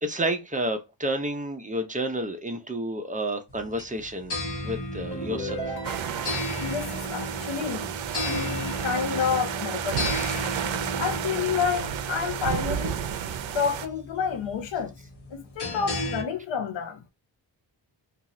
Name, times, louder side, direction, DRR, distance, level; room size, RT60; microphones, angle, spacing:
voice 1, 0.0-4.4 4.6-5.8, right 1 dB, 20° right, 0.5 m, -30 dB
sound 1, 3.5-16.2, left 1 dB, 60° left, 1.0 m, -34 dB
sound 2, 5.1-6.6, right 1 dB, 15° left, 1.2 m, -35 dB
sound 3, 5.8-13.9, right 10 dB, 80° right, 0.6 m, -32 dB
voice 2, 6.6-8.0 8.3-10.2 11.0-13.0 13.5-14.9 15.3-17.0, left 7 dB, 75° left, 0.6 m, -29 dB
2.6 x 2.4 x 3.0 m
wide cardioid pair, 140°, 46 cm